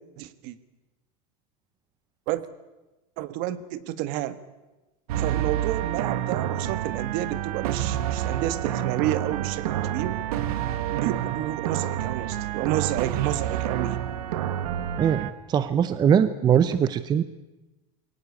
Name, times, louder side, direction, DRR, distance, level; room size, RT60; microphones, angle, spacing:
voice 1, 0.2-0.6 2.3-2.4 3.2-4.4 5.2-10.2 10.9-14.0, right 13 dB, 55° right, 14 dB, 1.5 m, -30 dB
sound 1, 5.1-15.3, right 11 dB, 90° right, 1.7 m, -28 dB
voice 2, 15.0-17.2, right 8 dB, 20° right, 14 dB, 0.7 m, -21 dB
22.5 x 18.0 x 8.5 m, 1.1 s
supercardioid pair, 150°, 19 cm